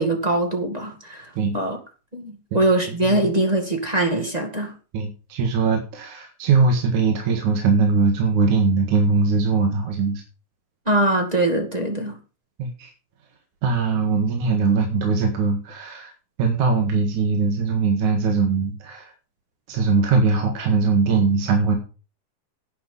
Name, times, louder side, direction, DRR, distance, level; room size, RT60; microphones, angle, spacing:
voice 1, 0.0-1.8 2.1-4.7 10.8-12.2, right 2 dB, 15° right, 1.5 m, -22 dB
voice 2, 4.9-10.2 12.6-12.9 13.6-16.1 16.4-19.1 19.7-21.8, right 4 dB, 65° right, 3.1 m, -21 dB
11.0 x 9.4 x 5.5 m
omnidirectional pair, 3.8 m